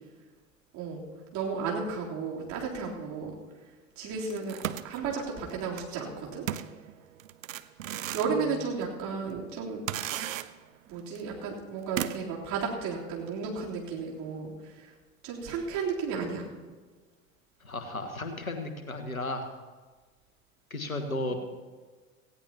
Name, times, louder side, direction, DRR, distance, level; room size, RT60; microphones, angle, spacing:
voice 1, 0.7-1.0 1.3-3.3 4.0-4.6 4.8-6.4 8.1-10.3 10.9-14.9 15.2-16.4 21.3-21.4, right 5 dB, 45° right, -4 dB, 3.6 m, -33 dB
sound 1, 4.3-5.9 6.5-8.4 8.8-8.9 9.9-10.8 11.1-11.2 12.0-12.4, right 11 dB, 70° right, 0.7 m, -36 dB
voice 2, 17.6-19.5 20.7-21.3, left 2 dB, 90° left, 6 dB, 1.4 m, -34 dB
18.5 x 16.0 x 2.9 m, 1.4 s
figure-of-eight pair, 80°, 41 cm